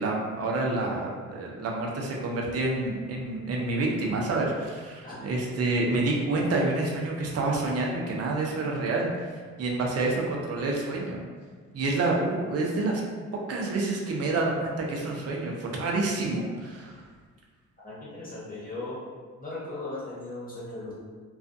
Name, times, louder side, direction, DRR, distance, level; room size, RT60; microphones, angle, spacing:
voice 1, 0.0-11.2 11.7-13.0 13.5-17.0, right 2 dB, 55° right, -1 dB, 0.6 m, -28 dB
voice 2, 17.8-19.0 19.4-20.9, left 2 dB, 30° left, -8 dB, 1.0 m, -37 dB
2.4 x 2.3 x 2.6 m, 1.5 s
cardioid pair, 90°, 30 cm